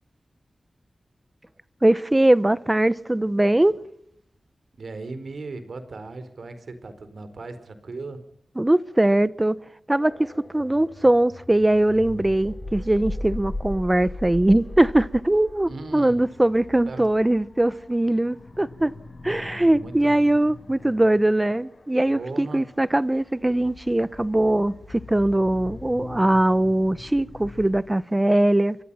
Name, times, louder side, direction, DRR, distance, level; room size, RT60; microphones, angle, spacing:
voice 1, 1.8-3.8 8.6-9.6 9.9-10.1 10.5-18.9 19.2-28.8, right 1 dB, 15° right, 0.9 m, -21 dB
voice 2, 4.8-8.2 15.7-16.3 16.9-17.1 19.5-20.1 22.1-22.7, right 3 dB, 70° right, 4.4 m, -37 dB
sound 1, 10.0-27.8, left 2 dB, 55° left, 7.2 m, -40 dB
30.0 x 24.5 x 5.7 m
wide cardioid pair, 85°, 0 cm